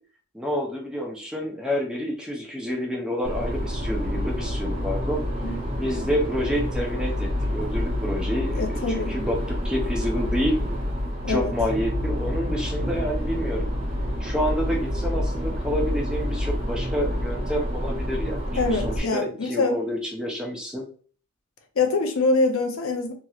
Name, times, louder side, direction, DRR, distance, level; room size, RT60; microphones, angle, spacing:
voice 1, 0.3-5.2 5.8-10.6 11.3-13.7 14.2-18.4 18.7-20.9, equal, 5° right, 0.6 m, -28 dB
sound 1, 3.2-19.0, left 1 dB, 40° right, 1.2 m, -28 dB
voice 2, 8.6-9.2 11.2-11.5 18.6-19.7 21.8-23.1, left 3 dB, 65° left, 0.6 m, -24 dB
3.0 x 2.9 x 2.3 m
head